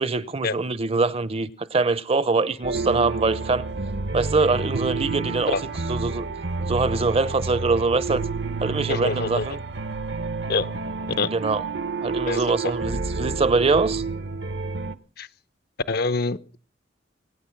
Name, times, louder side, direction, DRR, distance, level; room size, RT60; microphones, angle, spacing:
voice 1, 0.0-3.7 4.1-5.6 5.9-6.3 6.6-8.3 8.6-9.6 11.2-11.6 12.0-14.0, right 3 dB, 30° right, 0.6 m, -23 dB
sound 1, 2.6-14.9, right 3 dB, 65° right, 0.9 m, -29 dB
voice 2, 8.9-9.5 10.5-10.7 11.2-11.3 12.3-12.4 15.2-15.3 15.9-16.6, left 3 dB, 55° left, 0.7 m, -25 dB
23.5 x 9.6 x 5.9 m
head